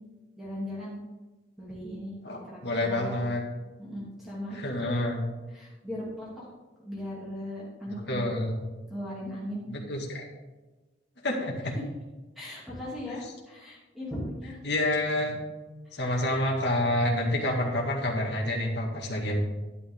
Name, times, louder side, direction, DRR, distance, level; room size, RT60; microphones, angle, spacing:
voice 1, 0.4-1.0 1.6-3.3 3.8-4.9 5.5-6.4 6.8-8.2 8.9-9.6 12.3-14.6, equal, ahead, -7 dB, 2.8 m, -38 dB
voice 2, 2.2-3.4 4.5-5.2 7.9-8.7 9.7-10.3 11.2-11.8 13.1-13.2 14.6-15.4 15.9-19.4, left 1 dB, 65° left, 0 dB, 1.9 m, -28 dB
10.5 x 9.3 x 3.7 m, 1.2 s
head